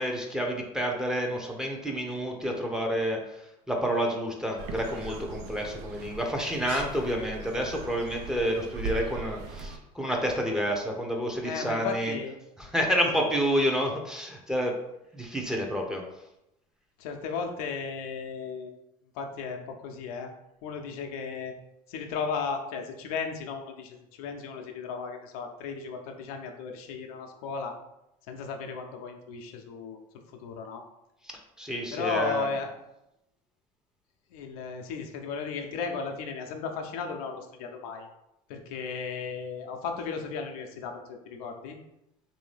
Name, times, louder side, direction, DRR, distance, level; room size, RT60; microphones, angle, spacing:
voice 1, 0.0-12.1 12.6-14.8 15.1-16.0 31.2-32.5, equal, 5° right, 0 dB, 0.7 m, -29 dB
sound 1, 4.6-9.8, right 4 dB, 70° right, 0.5 m, -39 dB
voice 2, 11.4-12.4 13.1-13.2 17.0-18.7 19.1-20.3 20.6-21.6 21.9-27.8 28.3-30.0 30.4-30.8 31.9-32.7 34.3-38.1 38.5-41.8, left 5 dB, 85° left, 4 dB, 0.6 m, -35 dB
3.3 x 2.6 x 3.3 m, 0.86 s
supercardioid pair, 90°, 18 cm